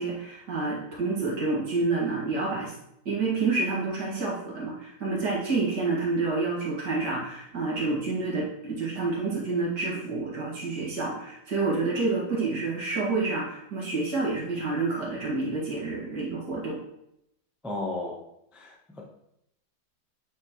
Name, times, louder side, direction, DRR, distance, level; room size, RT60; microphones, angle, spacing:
voice 1, 0.0-2.7 3.1-16.8, right 3 dB, 65° right, -5 dB, 2.4 m, -28 dB
voice 2, 17.6-18.2 18.5-19.0, left 2 dB, ahead, -2 dB, 0.4 m, -34 dB
8.5 x 4.1 x 3.1 m, 0.79 s
omnidirectional pair, 2.0 m